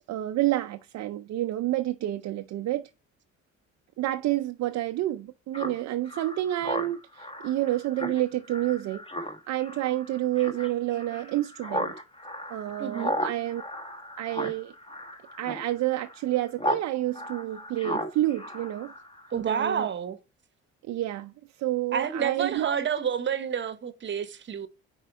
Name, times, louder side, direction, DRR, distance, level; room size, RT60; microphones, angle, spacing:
voice 1, 0.1-2.9 4.0-9.0 9.5-11.9 12.5-13.6 14.2-14.7 15.4-18.9 19.5-19.9 20.9-21.3 21.6-22.8, right 14 dB, 60° right, 0.5 m, -29 dB
Speech synthesizer, 5.5-16.9 17.1-19.4, equal, 20° left, 1.2 m, -35 dB
voice 2, 12.8-13.2 19.3-20.2 21.9-24.7, right 7 dB, 40° right, 0.9 m, -29 dB
5.0 x 4.6 x 4.5 m
cardioid pair, 85°, 31 cm